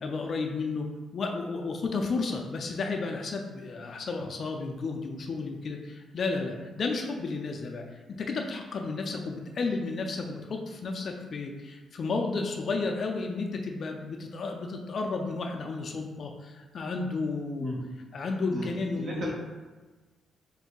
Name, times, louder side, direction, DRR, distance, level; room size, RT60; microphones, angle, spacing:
voice 1, 0.0-17.7 18.1-19.3, left 3 dB, 45° left, 2 dB, 0.4 m, -32 dB
voice 2, 18.5-19.3, equal, 40° right, -3 dB, 1.0 m, -36 dB
3.9 x 2.5 x 3.6 m, 1.3 s
cardioid pair, 140°, 0 cm